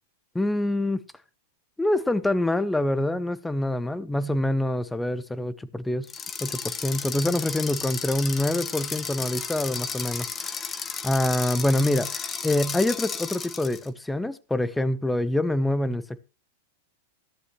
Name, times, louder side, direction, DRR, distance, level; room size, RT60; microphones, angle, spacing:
voice 1, 0.3-1.0 1.8-6.1 6.4-16.3, left 1 dB, 5° left, 1.0 m, -26 dB
sound 1, 6.0-13.9, left 6 dB, 20° left, 1.4 m, -33 dB
14.5 x 14.0 x 3.1 m
hypercardioid pair, 120°, 0 cm